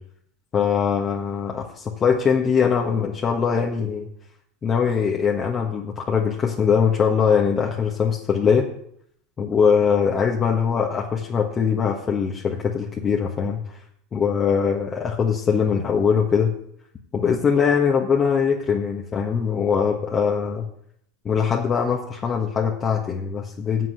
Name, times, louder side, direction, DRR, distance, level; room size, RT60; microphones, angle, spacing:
voice 1, 0.5-4.1 4.6-8.7 9.4-13.6 14.1-16.5 17.1-20.7 21.2-23.9, left 6 dB, 30° left, 0 dB, 1.4 m, -22 dB
7.9 x 7.7 x 7.9 m, 0.70 s
hypercardioid pair, 85°, 0 cm